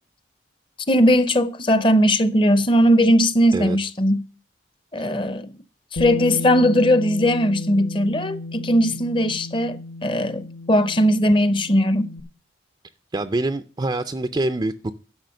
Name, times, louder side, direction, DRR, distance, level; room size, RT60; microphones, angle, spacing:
voice 1, 0.9-4.2 4.9-5.5 5.9-12.1, equal, 25° left, 0.7 m, -19 dB
Bass guitar, 6.0-12.2, left 2 dB, 65° left, 1.1 m, -33 dB
voice 2, 13.1-14.9, right 2 dB, 25° right, 0.4 m, -25 dB
12.0 x 5.7 x 6.4 m
head